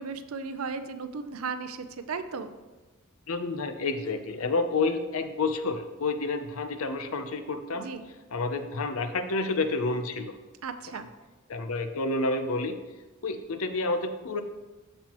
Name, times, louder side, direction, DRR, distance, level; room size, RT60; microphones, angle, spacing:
voice 1, 0.0-2.5 7.7-8.1 10.6-11.1, right 5 dB, 80° right, 10 dB, 0.5 m, -36 dB
voice 2, 3.3-7.9 8.3-10.3 11.5-12.8 13.2-14.4, left 3 dB, 80° left, 8 dB, 0.7 m, -29 dB
13.0 x 4.4 x 3.0 m, 1.2 s
head